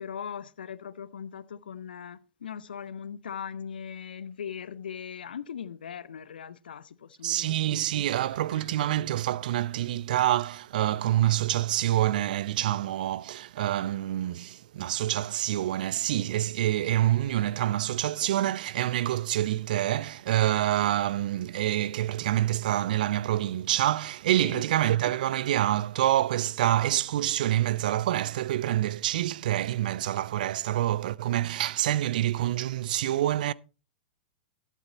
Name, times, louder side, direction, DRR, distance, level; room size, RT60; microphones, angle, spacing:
voice 1, 0.0-7.7 8.0-8.8 24.4-24.6, left 7 dB, 70° left, 0.6 m, -40 dB
voice 2, 7.2-33.5, right 13 dB, 55° right, 0.4 m, -27 dB
12.0 x 8.4 x 4.0 m
figure-of-eight pair, 100°, 5 cm